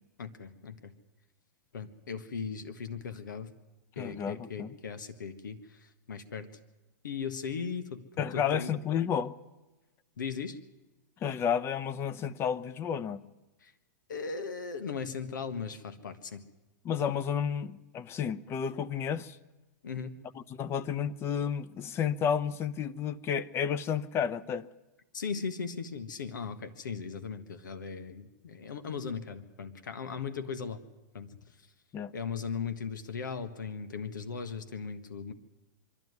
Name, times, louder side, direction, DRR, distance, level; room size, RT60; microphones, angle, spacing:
voice 1, 0.2-0.9 1.7-3.5 3.9-6.5 7.0-8.0 8.3-8.7 10.2-10.6 13.6-13.7 14.1-16.4 19.8-20.1 25.1-30.8 31.1-31.3 32.1-35.3, left 6 dB, 90° left, 10 dB, 1.5 m, -38 dB
voice 2, 4.0-4.7 8.2-9.4 11.2-13.2 16.8-19.4 20.3-24.7 31.9-32.1, left 8 dB, 25° left, 14 dB, 0.8 m, -31 dB
23.5 x 13.0 x 9.5 m, 1.1 s
hypercardioid pair, 135°, 10 cm